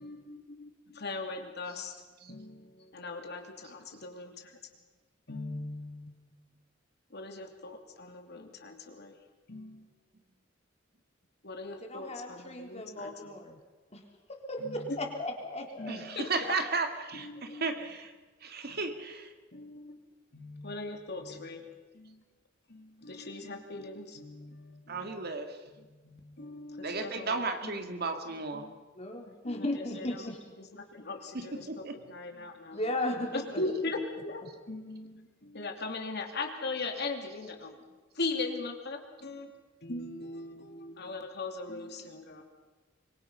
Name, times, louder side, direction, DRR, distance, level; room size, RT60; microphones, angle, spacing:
voice 1, 0.0-1.9 2.3-4.3 5.3-6.1 7.1-9.2 9.5-9.9 11.4-13.4 14.6-15.1 15.8-16.5 17.1-17.9 18.7-18.8 19.5-20.0 20.3-21.6 21.9-22.2 22.7-25.2 25.7-27.8 28.5-28.8 29.4-29.7 30.0-30.3 30.6-32.8 33.3-37.7 38.1-39.5 39.8-42.4, left 3 dB, 60° left, 4 dB, 2.9 m, -39 dB
voice 2, 11.9-13.6 13.9-14.0 14.5-14.6 15.0-16.1 29.0-30.6 32.7-33.6, left 1 dB, 35° left, 2 dB, 3.6 m, -36 dB
voice 3, 15.9-18.1 18.4-19.3 24.9-25.6 26.8-28.7 31.3-32.0, right 3 dB, 55° right, 6 dB, 2.2 m, -34 dB
25.5 x 23.0 x 5.7 m, 1.3 s
head